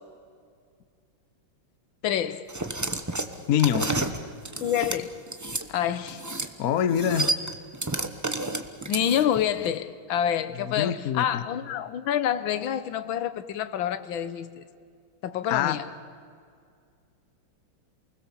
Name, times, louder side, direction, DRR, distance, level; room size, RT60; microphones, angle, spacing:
voice 1, 2.0-2.4 4.6-5.1 5.7-6.2 8.9-14.6 15.2-15.8, left 10 dB, 75° left, 1.7 m, -27 dB
sound 1, 2.5-5.7 6.1-6.5 6.8-9.4, right 2 dB, 20° right, 0.5 m, -30 dB
voice 2, 3.5-3.9 6.6-7.3 10.8-11.4 15.5-15.8, left 10 dB, 55° left, 1.1 m, -24 dB
28.5 x 20.5 x 7.3 m
omnidirectional pair, 2.3 m